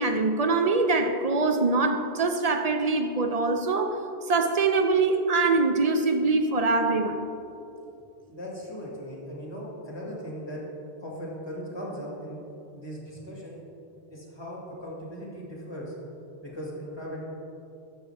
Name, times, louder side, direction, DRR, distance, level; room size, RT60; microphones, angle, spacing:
voice 1, 0.0-4.0 4.3-7.3, right 3 dB, 45° right, 6 dB, 0.5 m, -23 dB
voice 2, 8.3-10.6 11.0-12.4 12.7-13.6 14.1-15.9 16.4-17.3, equal, 25° left, -4 dB, 2.0 m, -38 dB
12.5 x 7.1 x 3.4 m, 2.8 s
omnidirectional pair, 1.2 m